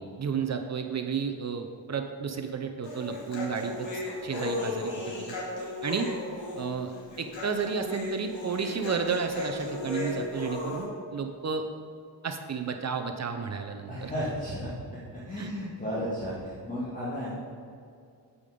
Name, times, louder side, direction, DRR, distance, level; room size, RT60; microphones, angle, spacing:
voice 1, 0.2-4.9 5.2-5.4 5.8-6.1 6.6-11.7 12.2-14.1 15.4-15.5, right 6 dB, 40° right, 5 dB, 0.6 m, -32 dB
Human voice, 2.8-10.8, left 2 dB, 90° left, 2.5 m, -35 dB
voice 2, 13.9-14.7 15.1-17.3, equal, 15° left, -10 dB, 2.1 m, -33 dB
8.8 x 8.5 x 5.1 m, 2.3 s
wide cardioid pair, 160°, 44 cm